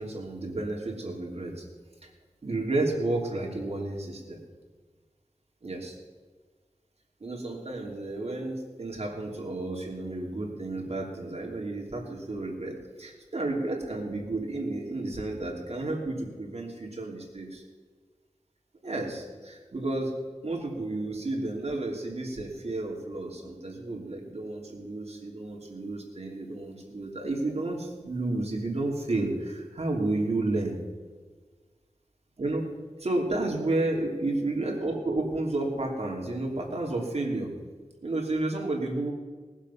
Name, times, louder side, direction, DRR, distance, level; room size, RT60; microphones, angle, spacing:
voice 1, 0.0-1.6 2.4-4.4 5.6-5.9 7.2-17.6 18.8-20.1 20.4-30.8 32.4-32.7 33.0-37.5 38.0-39.1, right 2 dB, 60° right, -1 dB, 3.0 m, -31 dB
20.0 x 7.4 x 5.7 m, 1.5 s
wide cardioid pair, 90°, 12 cm